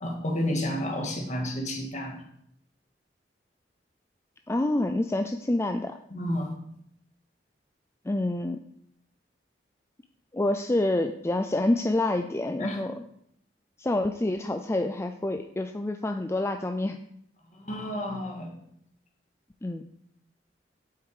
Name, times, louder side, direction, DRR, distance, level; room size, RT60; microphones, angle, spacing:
voice 1, 0.0-2.2 6.1-6.5 12.6-12.8 17.6-18.5, left 1 dB, 45° left, 2 dB, 1.9 m, -31 dB
voice 2, 4.5-6.0 8.1-8.6 10.3-12.9 13.8-17.0 19.6-19.8, left 1 dB, 15° left, 6 dB, 0.4 m, -27 dB
8.1 x 8.0 x 4.9 m, 0.72 s
head